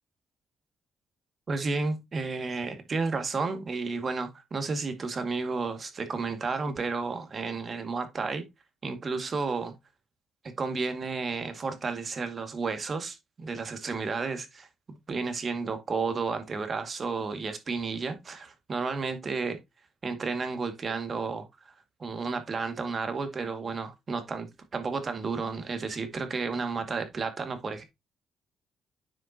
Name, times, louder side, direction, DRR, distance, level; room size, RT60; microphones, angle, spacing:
voice 1, 1.5-8.5 8.8-9.7 10.6-19.6 20.0-21.5 22.0-27.8, right 4 dB, 40° right, 2.2 m, -32 dB
9.6 x 5.6 x 2.9 m
cardioid pair, 90°, 0 cm